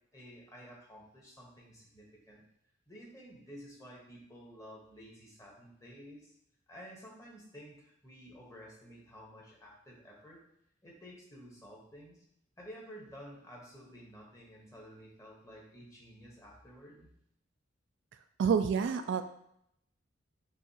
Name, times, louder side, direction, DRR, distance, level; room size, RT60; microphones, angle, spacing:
voice 1, 0.1-2.4 2.9-6.3 6.7-10.4 10.8-12.2 12.6-17.1, equal, 15° left, -3 dB, 1.2 m, -52 dB
voice 2, 18.4-19.2, right 6 dB, 65° right, 9 dB, 0.3 m, -28 dB
6.0 x 2.8 x 2.8 m, 0.75 s
head